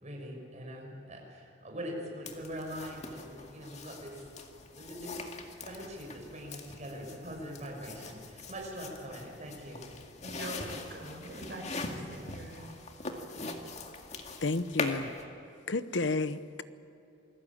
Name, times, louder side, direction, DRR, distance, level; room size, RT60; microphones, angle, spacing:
voice 1, 0.0-4.1 4.7-9.8, equal, 40° right, 0 dB, 6.3 m, -42 dB
sound 1, 2.3-15.2, left 3 dB, 35° left, 2.1 m, -42 dB
voice 2, 10.2-12.7, right 1 dB, 60° right, 1 dB, 6.1 m, -44 dB
voice 3, 14.4-15.1 15.7-16.6, left 3 dB, 75° left, 13 dB, 1.0 m, -31 dB
28.0 x 20.0 x 8.8 m, 2.7 s
head